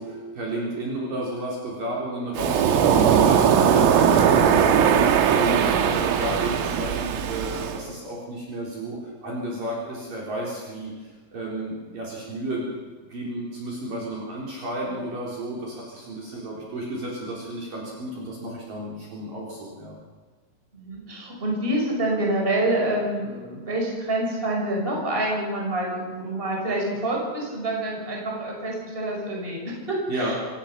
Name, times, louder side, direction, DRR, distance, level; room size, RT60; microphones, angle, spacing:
voice 1, 0.0-2.9 3.2-10.9 11.3-12.7 13.1-20.0 30.1-30.3, right 1 dB, 45° right, -4 dB, 5.2 m, -32 dB
Waves surf, 2.4-7.8, right 8 dB, 90° right, 4.2 m, -19 dB
voice 2, 2.7-3.1 14.8-14.9 20.7-30.3, right 1 dB, 10° right, -1 dB, 5.4 m, -27 dB
26.5 x 17.5 x 5.9 m, 1.4 s
omnidirectional pair, 5.8 m